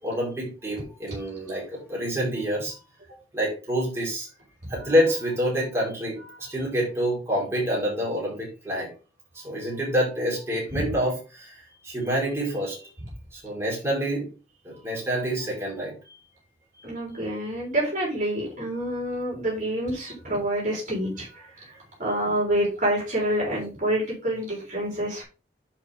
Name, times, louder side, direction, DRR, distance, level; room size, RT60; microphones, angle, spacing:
voice 1, 0.0-2.8 3.3-4.3 4.7-8.9 9.3-12.9 13.3-14.3 14.6-16.2, equal, 15° right, -5 dB, 4.2 m, -27 dB
voice 2, 16.8-21.3 22.0-25.2, right 1 dB, 45° right, -4 dB, 3.8 m, -27 dB
10.0 x 4.4 x 3.5 m, 0.33 s
head